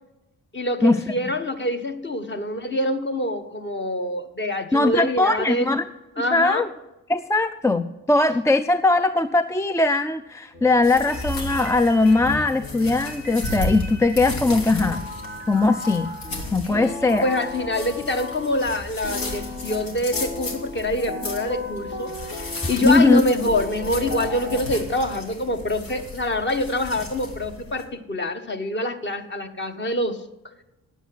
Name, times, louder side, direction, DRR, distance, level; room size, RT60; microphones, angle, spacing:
voice 1, 0.5-5.7 6.2-6.7 16.7-30.2, left 1 dB, 30° left, 6 dB, 1.3 m, -25 dB
voice 2, 4.7-5.8 6.3-6.7 7.1-15.0 15.5-16.1 16.5-17.2 22.8-23.2, left 2 dB, 10° left, 11 dB, 0.4 m, -20 dB
sound 1, 10.5-18.8 19.0-24.6, left 1 dB, 55° left, 2.6 m, -36 dB
sound 2, 10.8-27.8, left 2 dB, 70° left, 1.9 m, -34 dB
9.3 x 8.0 x 7.8 m, 0.98 s
hypercardioid pair, 45°, 36 cm